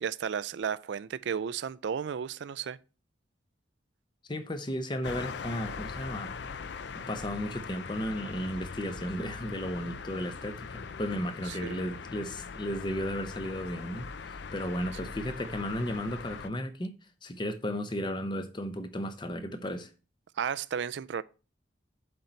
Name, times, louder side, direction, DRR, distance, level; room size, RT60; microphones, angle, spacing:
voice 1, 0.0-2.8 11.5-11.8 20.4-21.2, right 7 dB, 65° right, 0.3 m, -33 dB
voice 2, 4.3-6.4 6.9-16.9 17.2-19.9, equal, 25° left, 0.7 m, -34 dB
sound 1, 5.0-16.5, left 5 dB, 65° left, 0.4 m, -41 dB
7.9 x 4.0 x 4.4 m
head